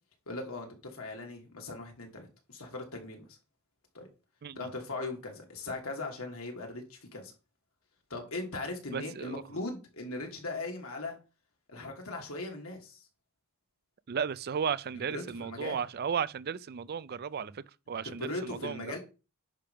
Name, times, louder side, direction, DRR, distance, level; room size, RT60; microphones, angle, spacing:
voice 1, 0.3-3.4 3.9-4.1 4.5-7.3 8.1-11.2 11.7-13.0 14.9-15.8 18.0-19.0, left 2 dB, 80° left, 2.6 m, -39 dB
voice 2, 8.9-9.4 14.1-18.9, right 7 dB, 45° right, 0.4 m, -35 dB
10.0 x 3.5 x 5.7 m
head